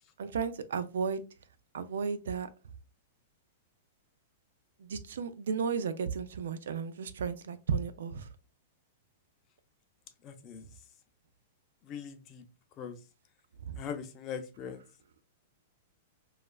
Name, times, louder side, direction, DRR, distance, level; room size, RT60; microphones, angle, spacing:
voice 1, 0.2-1.2 1.7-2.5 4.8-8.3 13.6-13.8, right 6 dB, 85° right, 0.3 m, -34 dB
voice 2, 10.2-10.7 11.8-12.4 12.8-13.0 13.8-14.8, left 7 dB, 35° left, 0.5 m, -41 dB
3.0 x 2.3 x 2.2 m
hypercardioid pair, 135°, 0 cm